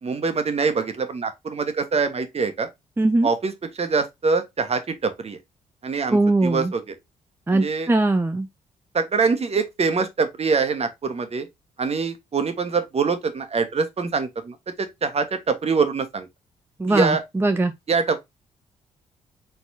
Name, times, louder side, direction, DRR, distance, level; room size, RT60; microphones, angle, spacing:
voice 1, 0.0-2.7 3.2-3.5 3.8-5.4 5.8-6.8 7.5-7.9 8.9-11.5 11.8-16.3 16.9-17.2 17.9-18.2, right 4 dB, 40° right, 1.2 m, -24 dB
voice 2, 3.0-3.3 6.1-6.7 7.5-8.5 16.8-17.7, right 2 dB, 15° right, 0.6 m, -20 dB
4.5 x 4.0 x 2.7 m
hypercardioid pair, 40°, 17 cm